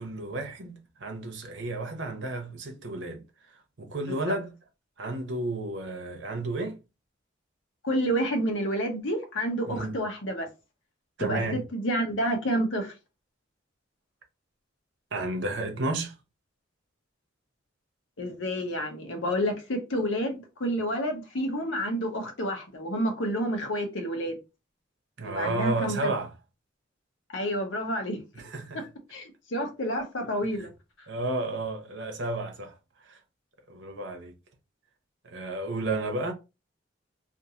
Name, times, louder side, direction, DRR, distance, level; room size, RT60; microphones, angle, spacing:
voice 1, 0.0-3.2 3.8-4.5 5.0-6.8 9.7-10.0 11.2-11.6 15.1-16.1 25.2-26.3 28.3-28.8 30.6-30.7 31.1-32.7 33.1-33.2 33.7-34.3 35.2-36.3, right 2 dB, 60° right, 0.8 m, -32 dB
voice 2, 7.8-10.5 11.2-11.4 11.7-12.9 18.2-24.4 25.2-26.1 27.3-28.2 28.7-30.7, equal, 70° left, 0.8 m, -29 dB
2.6 x 2.5 x 2.7 m
head